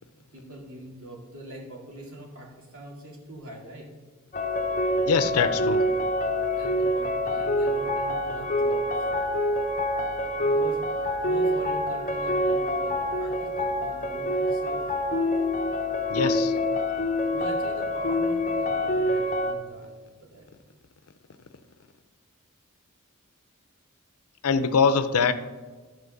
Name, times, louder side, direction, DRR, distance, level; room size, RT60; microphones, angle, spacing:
voice 1, 0.3-3.9 6.5-9.1 10.4-15.0 17.3-20.6, right 1 dB, 65° right, -1 dB, 2.4 m, -43 dB
sound 1, 4.3-19.5, left 1 dB, 35° left, 0.8 m, -26 dB
voice 2, 5.0-5.8 16.1-16.6 24.4-25.3, left 5 dB, 85° left, 11 dB, 0.6 m, -23 dB
12.5 x 4.3 x 6.5 m, 1.4 s
head